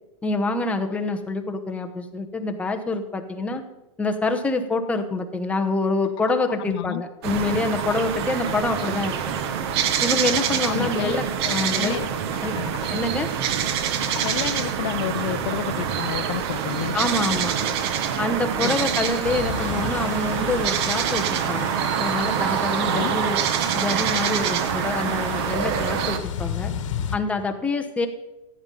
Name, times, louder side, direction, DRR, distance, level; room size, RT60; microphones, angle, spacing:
voice 1, 0.2-3.6 4.0-9.4 10.0-12.0 12.4-12.5 12.9-13.3 16.9-17.6 18.2-23.4 23.7-26.7 27.1-28.1, left 3 dB, 10° left, 4 dB, 0.9 m, -26 dB
sound 1, 5.9-6.9 7.2-8.3 12.3-13.2 13.7-14.8, left 11 dB, 30° left, 1.6 m, -42 dB
voice 2, 6.7-7.0 8.5-8.6 10.6-11.2 11.4-12.1 12.5-12.7 14.2-17.0 18.6-18.8 22.9-23.2, left 14 dB, 55° left, 14 dB, 0.5 m, -30 dB
sound 2, 7.2-26.2, right 8 dB, 55° right, 1.2 m, -25 dB
sound 3, 19.2-27.2, left 9 dB, 70° left, 1.3 m, -35 dB
14.5 x 9.1 x 5.4 m, 1.0 s
supercardioid pair, 150°, 16 cm